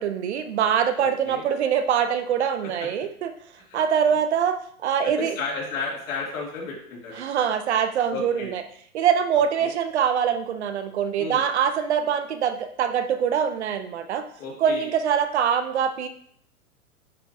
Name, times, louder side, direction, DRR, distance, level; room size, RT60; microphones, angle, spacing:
voice 1, 0.0-3.3 3.7-4.6 4.8-5.4 7.2-8.6 8.9-14.2 14.6-16.1, right 8 dB, 50° right, 9 dB, 0.6 m, -23 dB
voice 2, 1.0-1.4 2.8-2.9 3.7-3.8 5.0-7.2 8.1-8.5 9.6-9.7 11.2-11.4 14.4-14.9, left 4 dB, 65° left, -3 dB, 2.7 m, -33 dB
8.9 x 4.3 x 2.7 m, 0.63 s
hypercardioid pair, 165°, 43 cm